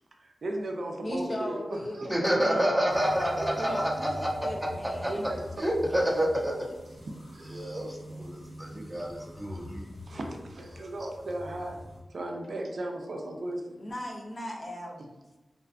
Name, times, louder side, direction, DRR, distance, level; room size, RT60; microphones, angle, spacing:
voice 1, 0.2-2.1 2.4-3.3 3.6-3.8 5.1-5.4 7.3-7.5 10.1-11.8 12.1-13.8, right 1 dB, 65° right, 2 dB, 0.3 m, -36 dB
voice 2, 1.0-2.0 2.3-3.1 3.6-4.1 4.4-5.3 13.8-15.0, equal, 45° left, -1 dB, 0.5 m, -37 dB
voice 3, 2.1-4.3 4.8-6.7 7.5-9.9 10.7-10.8, equal, 5° right, -3 dB, 0.6 m, -29 dB
sound 1, 2.9-12.0, equal, 65° left, 1.0 m, -44 dB
2.5 x 2.2 x 2.4 m, 1.1 s
wide cardioid pair, 85°, 0 cm